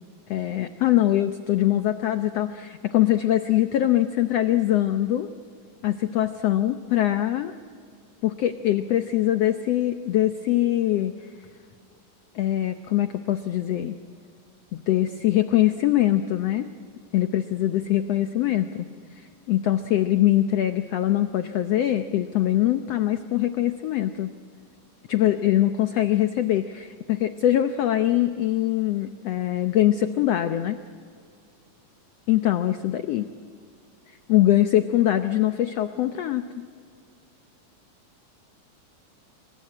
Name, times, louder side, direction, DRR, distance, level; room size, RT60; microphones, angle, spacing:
voice 1, 0.3-5.3 5.8-7.5 8.2-11.2 12.3-14.0 14.9-16.7 17.1-18.8 19.1-24.3 25.1-30.8 32.3-33.3 34.3-36.6, left 13 dB, 85° left, 9 dB, 1.4 m, -23 dB
28.5 x 23.5 x 8.6 m, 2.3 s
omnidirectional pair, 4.0 m